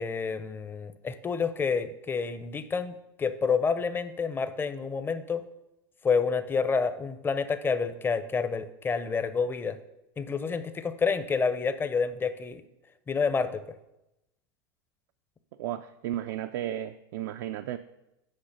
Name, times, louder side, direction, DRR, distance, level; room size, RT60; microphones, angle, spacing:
voice 1, 0.0-5.4 6.0-9.8 10.2-12.6 13.1-13.6, left 5 dB, 15° left, 12 dB, 0.5 m, -29 dB
voice 2, 15.6-17.8, right 12 dB, 65° right, 8 dB, 0.4 m, -34 dB
6.5 x 4.8 x 5.9 m, 0.92 s
hypercardioid pair, 110°, 12 cm